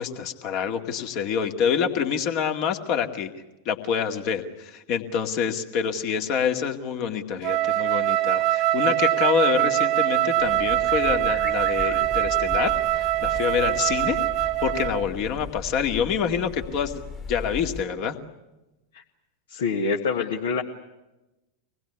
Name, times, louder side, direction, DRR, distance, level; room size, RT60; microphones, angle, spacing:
voice 1, 0.0-3.3 3.7-14.2 14.6-17.0 17.3-18.2, left 7 dB, 45° left, 5 dB, 2.2 m, -26 dB
Wind instrument woodwind instrument, 7.4-15.1, right 15 dB, 40° right, 0.9 m, -23 dB
sound 1, 10.4-17.9, left 4 dB, 25° left, 2.3 m, -38 dB
voice 2, 19.5-20.6, left 4 dB, 60° left, 2 dB, 1.7 m, -26 dB
25.5 x 20.0 x 9.8 m, 1.0 s
figure-of-eight pair, 90°, 0 cm